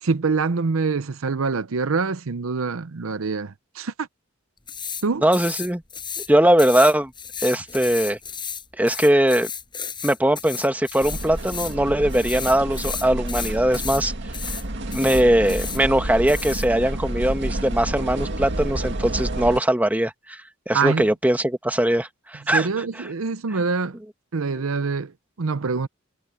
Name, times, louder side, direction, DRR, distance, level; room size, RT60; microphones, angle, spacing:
voice 1, 0.0-4.1 5.0-5.2 20.7-21.1 22.5-24.0 24.3-25.1 25.4-25.9, right 4 dB, 80° right, 0.7 m, -25 dB
sound 1, 4.7-5.1 5.3-6.3 6.6-11.8 12.1-14.1 14.3-14.6 14.9-15.8 16.3-16.7, left 7 dB, 25° left, 6.3 m, -33 dB
voice 2, 5.2-5.8 6.3-7.1 7.4-8.2 8.8-9.5 10.0-14.1 14.9-20.4 20.7-22.7, right 1 dB, 10° right, 1.6 m, -20 dB
sound 2, 11.0-19.6, right 1 dB, 60° right, 2.0 m, -29 dB
head